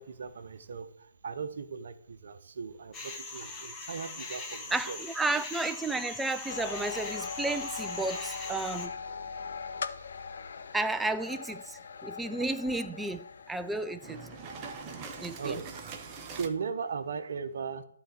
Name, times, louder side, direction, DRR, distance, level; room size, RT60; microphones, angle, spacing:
voice 1, 0.0-5.0 14.6-14.7 15.4-17.8, right 5 dB, 50° right, 0.9 m, -38 dB
sound 1, 2.9-8.9, left 3 dB, 15° left, 1.1 m, -41 dB
voice 2, 4.7-8.9 10.7-14.2 15.2-15.6, right 2 dB, 5° right, 0.4 m, -32 dB
sound 2, 6.5-16.1, left 5 dB, 55° left, 0.7 m, -41 dB
sound 3, 14.0-16.5, right 5 dB, 20° right, 0.9 m, -43 dB
11.5 x 4.0 x 7.8 m
figure-of-eight pair, 140°, 0 cm